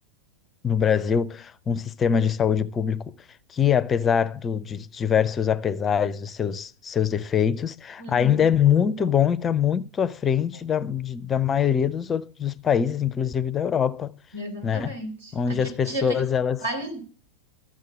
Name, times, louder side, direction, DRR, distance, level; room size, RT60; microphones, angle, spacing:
voice 1, 0.6-3.1 3.5-14.1 14.6-14.9 15.3-16.6, left 8 dB, 20° left, 0.5 m, -23 dB
voice 2, 8.0-8.4 9.0-9.1 14.3-16.2 16.6-17.0, right 1 dB, 75° right, 4.3 m, -33 dB
13.5 x 7.6 x 7.4 m
figure-of-eight pair, 90°, 0 cm